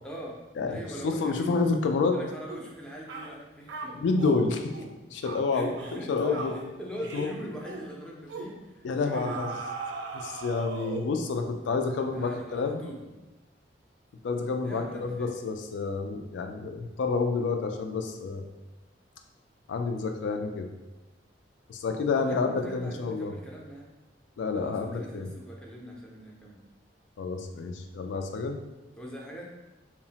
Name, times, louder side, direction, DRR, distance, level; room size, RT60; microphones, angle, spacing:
voice 1, 0.0-0.4 0.7-1.6 2.1-4.0 5.5-9.4 11.9-13.1 14.6-15.4 22.2-23.9 24.5-26.6 29.0-29.5, right 1 dB, 5° left, -3 dB, 0.4 m, -42 dB
voice 2, 1.0-2.2 3.9-4.7 5.1-5.7 6.1-6.5 7.1-7.3 8.8-9.5 10.1-12.8 14.2-18.4 19.7-20.7 21.7-23.3 24.4-25.3 27.2-28.6, left 4 dB, 70° left, 5 dB, 0.3 m, -29 dB
sound 1, 2.5-2.7 3.1-3.3 3.7-4.4 4.7-4.9 5.2-5.4 5.8-6.0 6.3-6.6 7.0-7.3 7.6-7.9 8.3-8.5 9.1-11.2, right 4 dB, 75° right, 0.3 m, -38 dB
2.8 x 2.0 x 2.7 m, 1.1 s
head